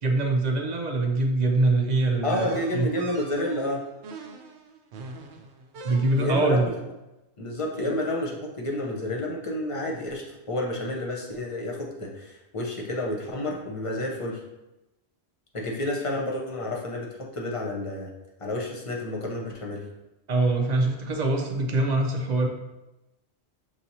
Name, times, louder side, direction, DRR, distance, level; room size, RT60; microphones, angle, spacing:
voice 1, 0.0-2.5 2.7-2.9 5.8-6.7 7.8-7.9 20.3-22.5, right 2 dB, 50° right, 2 dB, 0.6 m, -23 dB
voice 2, 2.2-3.8 6.2-6.6 7.4-14.4 15.5-18.1 18.4-19.9, left 1 dB, 35° left, -2 dB, 0.8 m, -30 dB
sound 1, 2.3-6.6, right 3 dB, 80° right, 0.9 m, -44 dB
6.4 x 2.9 x 2.7 m, 0.99 s
omnidirectional pair, 1.1 m